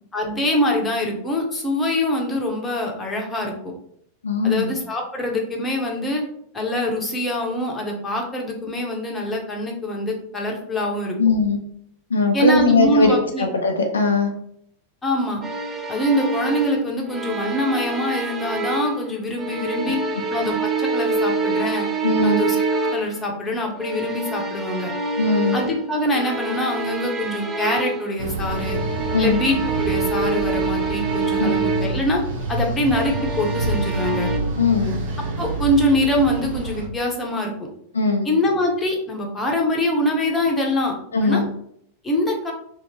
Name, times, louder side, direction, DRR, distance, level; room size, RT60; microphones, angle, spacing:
voice 1, 0.1-3.7 4.4-6.2 6.5-11.2 12.3-13.5 15.0-15.4 15.9-20.0 20.3-21.9 22.2-22.6 22.8-24.9 25.5-28.8 29.2-32.2 32.5-34.3 35.4-37.7 38.2-41.0 41.2-41.4 42.0-42.5, left 1 dB, 15° left, 0 dB, 0.7 m, -24 dB
voice 2, 4.2-4.7 11.2-11.6 12.1-14.3 22.0-22.4 25.2-25.6 29.1-29.4 31.4-31.6 34.6-35.0 37.9-38.3 41.1-41.4, left 3 dB, 70° left, 3 dB, 0.4 m, -20 dB
sound 1, 15.4-19.1 19.4-23.2 23.8-28.1 28.5-32.0 32.8-34.4, right 3 dB, 20° right, 0.4 m, -26 dB
sound 2, 28.2-36.9, right 2 dB, 65° right, 0.8 m, -28 dB
2.7 x 2.5 x 2.9 m, 0.69 s
figure-of-eight pair, 90°, 0 cm